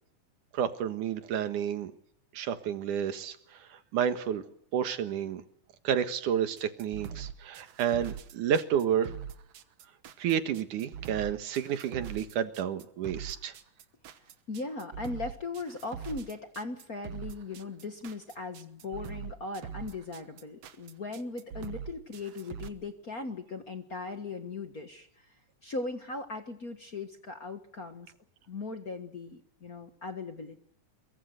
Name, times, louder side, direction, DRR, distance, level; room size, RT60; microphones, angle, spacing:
voice 1, 0.5-1.9 2.3-3.4 3.9-4.4 4.7-5.4 5.8-9.1 10.2-13.5, right 9 dB, 85° right, 10 dB, 3.0 m, -30 dB
sound 1, 6.6-22.7, right 8 dB, 60° right, 2.1 m, -42 dB
voice 2, 14.5-25.4 25.6-28.1 28.5-30.6, left 3 dB, 40° left, 7 dB, 1.5 m, -39 dB
24.0 x 23.0 x 6.6 m, 0.68 s
omnidirectional pair, 3.5 m